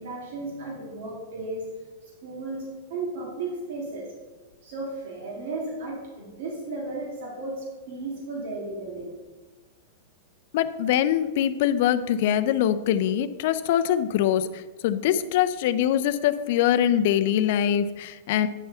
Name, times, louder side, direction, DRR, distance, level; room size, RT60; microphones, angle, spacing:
voice 1, 0.0-1.7 2.2-4.1 4.6-9.2, right 2 dB, 70° right, -3 dB, 1.9 m, -34 dB
voice 2, 10.5-18.5, left 10 dB, 60° left, 12 dB, 0.4 m, -23 dB
9.1 x 3.4 x 5.5 m, 1.3 s
supercardioid pair, 140°, 0 cm